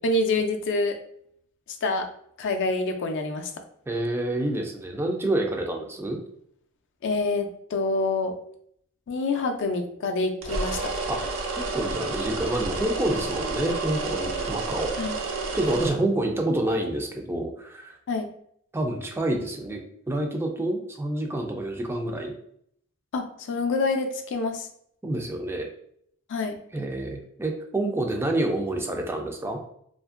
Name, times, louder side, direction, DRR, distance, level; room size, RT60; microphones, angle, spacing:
voice 1, 0.0-1.0 1.8-2.1 2.4-3.5 7.0-8.3 9.1-10.9 15.0-15.2 18.1-18.3 23.1-24.7 26.3-26.6, left 3 dB, 60° left, 5 dB, 0.4 m, -26 dB
voice 2, 3.9-6.2 11.1-11.2 11.7-14.9 15.5-18.0 18.7-19.8 20.1-22.3 25.0-25.7 26.7-29.6, right 1 dB, 10° right, 2 dB, 0.3 m, -28 dB
sound 1, 10.4-15.9, right 3 dB, 80° right, 0.5 m, -30 dB
2.8 x 2.5 x 2.4 m, 0.68 s
head